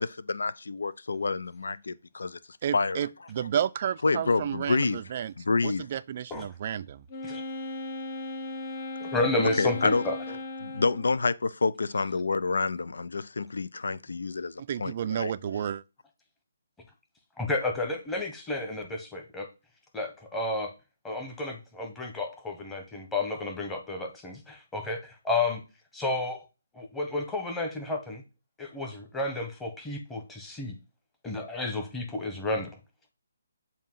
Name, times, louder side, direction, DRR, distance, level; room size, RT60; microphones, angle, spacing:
voice 1, 0.0-2.4 2.7-3.1 4.0-5.0 5.4-5.9 9.6-10.0 10.6-15.3, left 4 dB, 80° left, 0.5 m, -28 dB
voice 2, 2.6-7.0 14.6-15.8, right 9 dB, 40° right, 0.4 m, -32 dB
Wind instrument woodwind instrument, 7.1-11.2, left 2 dB, 35° left, 1.0 m, -37 dB
voice 3, 9.0-10.4 17.4-19.5 19.9-20.7 21.0-25.6 25.9-26.4 26.7-28.2 28.6-30.8 31.2-32.8, left 2 dB, 10° left, 1.2 m, -31 dB
7.3 x 2.8 x 5.6 m
hypercardioid pair, 155°, 0 cm